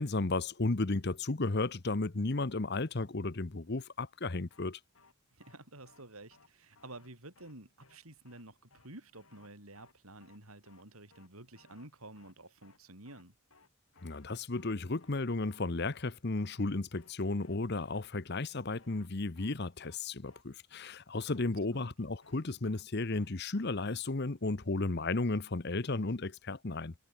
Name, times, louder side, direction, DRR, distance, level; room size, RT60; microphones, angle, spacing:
voice 1, 0.0-4.8 14.0-26.9, left 3 dB, 50° left, 0.9 m, -34 dB
sound 1, 4.5-4.7 4.9-5.1 5.4-5.6 5.9-6.0 6.3-6.5 6.8-7.1 7.4-7.5 7.8-8.0 8.3-8.4 8.7-8.9 9.1-9.5 9.8-9.9 10.2-10.4 10.7-10.8 11.1-11.3 11.6-11.9 12.2-12.3 12.6-12.8 13.1-13.2 13.5-13.7 14.0-14.3 14.5-14.7 15.0-15.2 15.5-15.6 15.9-16.1 16.4-16.7 17.0-17.1 17.4-17.6 17.9-18.0 18.3-18.5 18.7-19.1 19.4-19.5 19.8-20.0 20.3-20.4 20.7-20.9 21.2-21.5 21.8-21.9 22.2-22.4 22.7-22.8 23.1-23.3 23.6-23.7, left 3 dB, 75° left, 4.8 m, -63 dB
voice 2, 5.3-13.3 21.7-21.9, right 2 dB, 85° right, 7.5 m, -51 dB
head